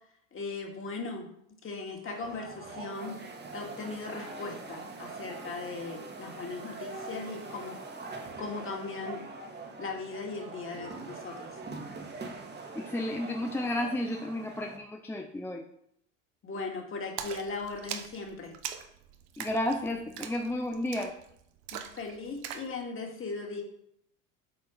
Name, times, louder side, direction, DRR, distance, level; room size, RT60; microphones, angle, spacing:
voice 1, 0.3-1.3 1.6-3.2 3.5-7.8 8.4-9.2 9.8-11.6 16.4-18.6 21.7-23.6, left 4 dB, 30° left, 1 dB, 2.1 m, -38 dB
sound 1, 2.0-14.8, right 3 dB, 25° right, 1.5 m, -43 dB
voice 2, 12.7-15.6 19.4-21.2, left 1 dB, 5° left, 2 dB, 0.6 m, -32 dB
Splash splatter, 17.2-22.7, right 9 dB, 65° right, 1.0 m, -42 dB
8.1 x 4.4 x 5.0 m, 0.73 s
hypercardioid pair, 85°, 41 cm